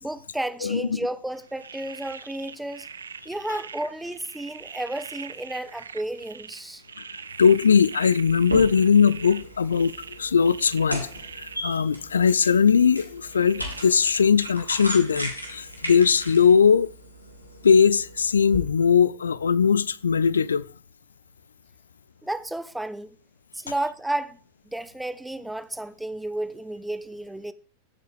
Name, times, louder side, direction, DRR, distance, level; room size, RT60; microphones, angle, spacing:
voice 1, 0.0-2.9 3.2-6.8 22.2-23.2 23.5-24.4 24.6-27.5, right 1 dB, 5° right, 0.7 m, -32 dB
voice 2, 0.6-1.0 7.4-9.9 10.2-11.1 11.3-16.9 17.6-20.6, left 6 dB, 70° left, 0.5 m, -20 dB
sound 1, 1.3-15.9, right 6 dB, 70° right, 0.6 m, -43 dB
sound 2, 8.3-18.6, equal, 90° left, 2.4 m, -37 dB
15.5 x 8.1 x 3.5 m
figure-of-eight pair, 90°, 0 cm